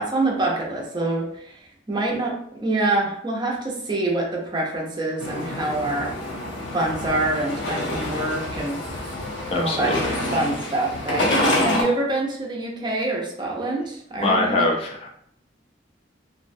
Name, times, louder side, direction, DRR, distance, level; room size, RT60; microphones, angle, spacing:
voice 1, 0.0-6.1 6.7-8.8 9.1-9.2 9.5-9.9 10.3-14.6, right 2 dB, 25° right, -1 dB, 0.5 m, -26 dB
sound 1, 5.2-11.8, left 1 dB, 80° left, 0.7 m, -27 dB
voice 2, 9.5-10.2 14.2-15.1, left 2 dB, 35° left, -1 dB, 0.4 m, -23 dB
2.5 x 2.1 x 2.5 m, 0.68 s
head